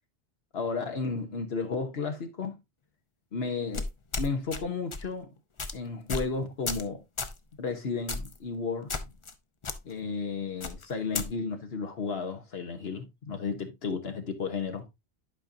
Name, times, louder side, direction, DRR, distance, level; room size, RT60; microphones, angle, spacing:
voice 1, 0.5-2.6 3.3-3.8 4.2-5.3 5.7-7.0 7.6-8.9 9.8-14.9, left 4 dB, 65° left, 1.2 m, -33 dB
sound 1, 3.7-4.6 4.9-5.1 5.6-5.7 6.1-6.3 6.7-6.9 7.2-7.4 8.1-8.4 8.9-9.3 9.6-9.8 10.6-11.3, left 3 dB, 35° left, 0.6 m, -33 dB
11.0 x 5.2 x 2.6 m
omnidirectional pair, 1.2 m